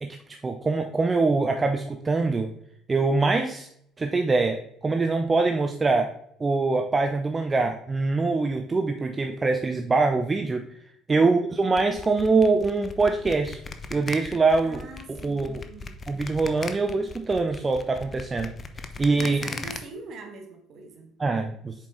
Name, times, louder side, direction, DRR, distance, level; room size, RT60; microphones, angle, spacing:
voice 1, 0.0-2.5 2.9-3.7 4.0-6.1 6.4-10.7 11.1-13.6 13.9-14.8 15.2-15.6 16.1-18.5 19.0-19.4 21.2-21.7, right 3 dB, 25° right, 5 dB, 0.6 m, -24 dB
sound 1, 11.8-19.8, left 4 dB, 35° left, 0.7 m, -38 dB
voice 2, 14.6-16.0 18.9-21.1, right 3 dB, 50° right, 3 dB, 1.6 m, -42 dB
6.9 x 4.6 x 3.9 m, 0.69 s
figure-of-eight pair, 55°, 0 cm